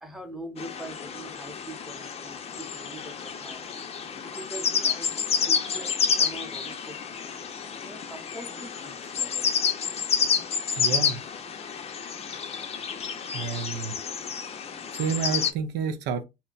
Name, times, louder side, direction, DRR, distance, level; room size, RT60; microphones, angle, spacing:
voice 1, 0.0-3.6 4.2-7.2 7.8-9.5, right 1 dB, ahead, 0.8 m, -43 dB
sound 1, 0.6-15.5, left 6 dB, 35° left, 0.5 m, -29 dB
voice 2, 10.8-11.2 13.3-13.9 14.9-16.2, right 6 dB, 85° right, 0.6 m, -29 dB
2.8 x 2.1 x 3.8 m
cardioid pair, 110°, 17 cm